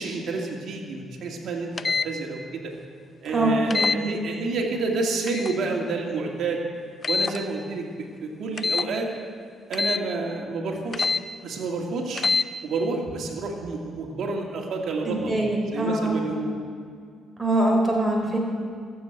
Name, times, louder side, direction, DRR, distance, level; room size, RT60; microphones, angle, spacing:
voice 1, 0.0-2.6 3.2-6.6 7.1-9.1 9.7-11.1 11.4-12.3 12.6-15.4 15.7-16.6, right 3 dB, 70° right, 0 dB, 2.2 m, -29 dB
sound 1, 1.8-2.1 3.7-4.0 5.3-5.6 7.0-7.4 8.6-8.9 9.7-10.0 10.9-11.2 12.2-12.5, left 4 dB, 35° left, 0.4 m, -24 dB
voice 2, 3.2-4.0 15.0-16.2 17.4-18.4, right 1 dB, 10° right, -1 dB, 3.5 m, -23 dB
13.5 x 7.7 x 8.1 m, 2.1 s
cardioid pair, 90°, 0 cm